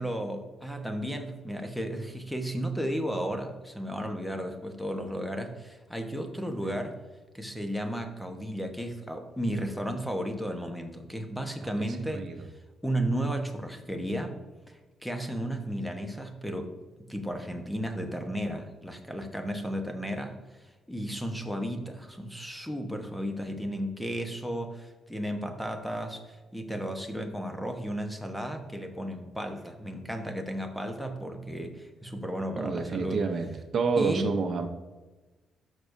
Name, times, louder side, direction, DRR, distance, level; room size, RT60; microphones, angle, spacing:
voice 1, 0.0-7.0 7.3-12.5 12.8-14.3 14.7-16.7 17.0-33.2 34.0-34.3, equal, 5° left, 5 dB, 1.1 m, -34 dB
voice 2, 11.6-12.3 32.5-34.7, right 4 dB, 50° right, 5 dB, 0.8 m, -29 dB
12.5 x 6.2 x 2.7 m, 1.2 s
cardioid pair, 90°, 0 cm